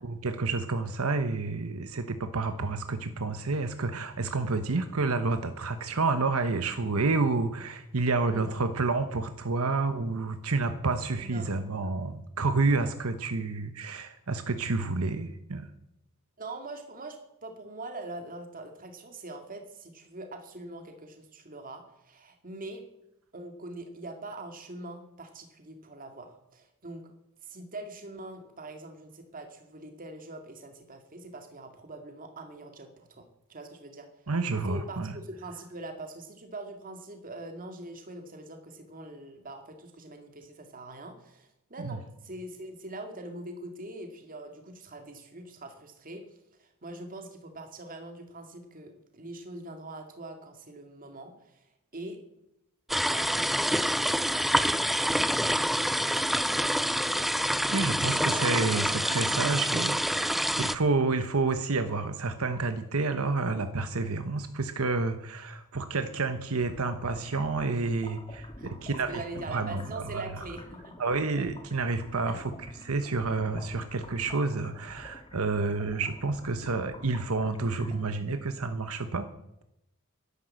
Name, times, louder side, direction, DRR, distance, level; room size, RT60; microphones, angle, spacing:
voice 1, 0.0-15.7 34.3-35.2 41.8-42.0 57.7-69.2 69.5-70.5 71.0-72.5 72.8-79.3, right 3 dB, 80° right, 9 dB, 1.1 m, -29 dB
voice 2, 11.1-11.5 16.4-22.8 23.3-27.1 27.4-34.1 34.6-46.2 46.6-51.6 51.9-52.2 53.0-57.3 58.0-59.2 60.5-60.6 68.6-68.7 69.1-70.9 72.2-72.4, right 2 dB, 40° right, 5 dB, 2.3 m, -43 dB
sound 1, 52.9-60.8, equal, ahead, 0.4 m, -27 dB
sound 2, 66.6-78.1, left 1 dB, 25° left, 1.9 m, -48 dB
12.0 x 11.0 x 7.7 m, 0.82 s
head